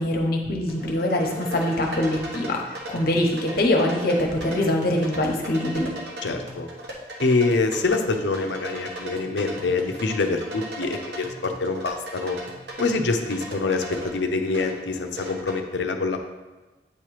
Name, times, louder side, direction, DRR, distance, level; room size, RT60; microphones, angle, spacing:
voice 1, 0.0-5.9, left 1 dB, 60° left, 1 dB, 1.0 m, -23 dB
sound 1, 0.7-15.6, right 1 dB, 70° right, 1.2 m, -38 dB
voice 2, 6.2-6.7 7.2-12.4 12.8-16.2, left 3 dB, 85° left, 5 dB, 0.6 m, -25 dB
8.3 x 3.0 x 4.8 m, 1.2 s
head